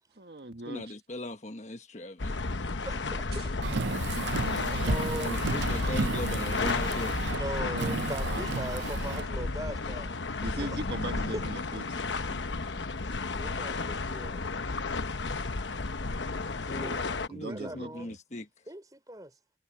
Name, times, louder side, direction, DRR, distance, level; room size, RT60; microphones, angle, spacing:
voice 1, 0.2-0.9 3.3-3.5 3.9-4.0 8.2-8.4 10.4-12.0 12.3-12.9 17.3-18.2, right 2 dB, 60° right, 1.7 m, -40 dB
voice 2, 0.7-2.4 5.1-7.2 14.9-15.0 16.4-17.0 17.3-18.5, left 1 dB, 40° left, 1.3 m, -39 dB
sound 1, 2.2-17.3, left 3 dB, 85° left, 1.0 m, -32 dB
voice 3, 2.8-3.5 4.7-5.4 7.3-10.1 10.6-10.8 11.3-11.4 13.3-14.4 14.9-15.0 16.8-18.1 18.7-19.3, right 1 dB, 20° right, 4.3 m, -40 dB
Car, 3.6-9.3, right 4 dB, 75° right, 0.6 m, -34 dB
head